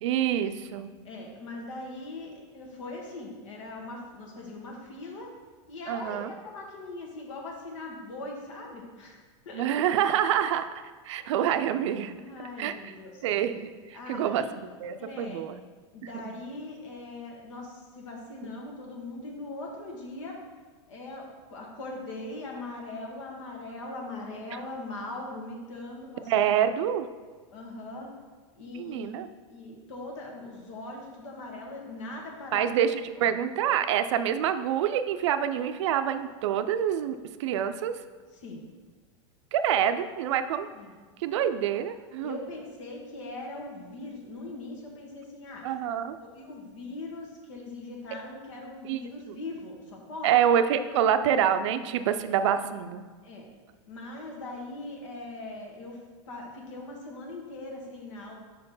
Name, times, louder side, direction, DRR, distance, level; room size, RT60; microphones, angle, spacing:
voice 1, 0.0-0.9 5.9-6.3 9.5-10.7 11.0-12.1 12.6-12.9 13.2-14.4 14.8-15.6 18.4-18.5 26.3-27.1 28.7-29.3 32.5-38.0 39.5-40.7 41.2-42.4 45.6-46.2 48.8-49.0 49.3-49.4 50.2-53.0, right 9 dB, 70° right, 10 dB, 0.4 m, -26 dB
voice 2, 1.0-5.3 5.7-9.2 9.4-9.7 11.2-11.3 12.1-13.1 13.9-14.5 15.0-15.4 15.9-20.4 20.9-26.4 27.5-28.1 28.5-29.1 29.5-32.7 33.2-33.4 38.3-38.6 40.7-40.9 42.2-45.6 46.3-50.3 52.3-52.6 53.2-53.5 53.9-58.4, left 2 dB, 85° left, 0 dB, 1.6 m, -40 dB
5.2 x 4.4 x 5.5 m, 1.4 s
supercardioid pair, 165°, 15 cm